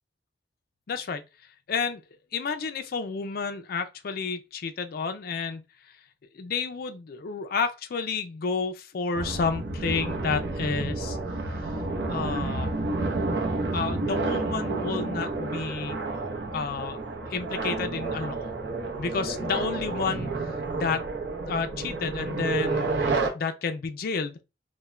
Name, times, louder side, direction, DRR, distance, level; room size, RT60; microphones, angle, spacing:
voice 1, 0.9-1.2 1.7-2.0 2.3-5.9 6.3-11.2 11.6-11.7 12.1-12.7 13.7-16.0 16.5-17.0 17.3-18.5 19.0-21.1 21.5-23.1 23.3-24.4, left 5 dB, 55° left, 0.4 m, -31 dB
sound 1, 9.1-23.3, right 3 dB, 70° right, 0.6 m, -30 dB
2.4 x 2.1 x 3.1 m
head